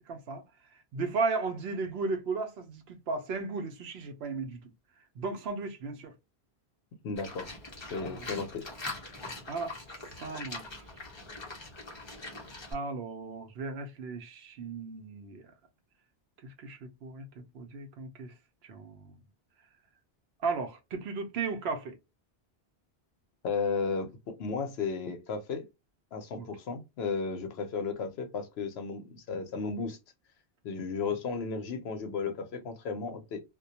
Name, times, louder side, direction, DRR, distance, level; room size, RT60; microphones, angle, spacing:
voice 1, 0.1-0.4 0.9-4.6 5.2-6.1 8.1-8.2 9.5-9.7 10.1-10.8 12.7-15.4 16.4-18.3 18.6-19.2 20.4-22.0 26.3-26.5, right 4 dB, 75° right, 0.9 m, -35 dB
voice 2, 7.0-7.5 7.9-8.7 23.4-25.7 26.1-30.0 30.6-33.4, left 5 dB, 75° left, 0.9 m, -34 dB
Livestock farm animals working animals, 7.2-12.7, left 2 dB, 30° left, 0.7 m, -42 dB
2.3 x 2.2 x 2.6 m
omnidirectional pair, 1.1 m